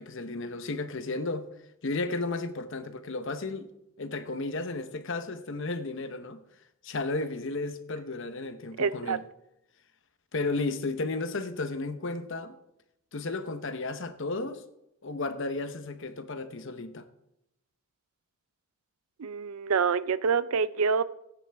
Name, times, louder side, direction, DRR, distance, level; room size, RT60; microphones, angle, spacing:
voice 1, 0.0-1.5 1.8-3.7 4.0-6.4 6.8-9.2 10.3-12.6 13.1-14.6 15.0-17.1, left 3 dB, 60° left, 0.9 m, -33 dB
voice 2, 8.8-9.2 19.2-21.0, right 5 dB, 80° right, 0.5 m, -26 dB
16.0 x 9.2 x 3.5 m
head